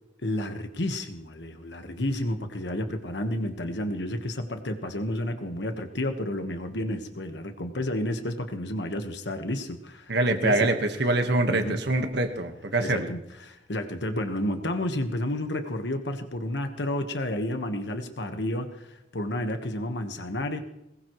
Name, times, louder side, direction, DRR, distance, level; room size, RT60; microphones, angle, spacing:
voice 1, 0.2-10.1 10.4-10.7 11.5-11.8 12.8-20.6, left 1 dB, 70° left, 6 dB, 1.5 m, -31 dB
voice 2, 10.1-13.1, right 2 dB, 65° right, 6 dB, 1.5 m, -25 dB
22.5 x 20.0 x 3.2 m, 0.88 s
head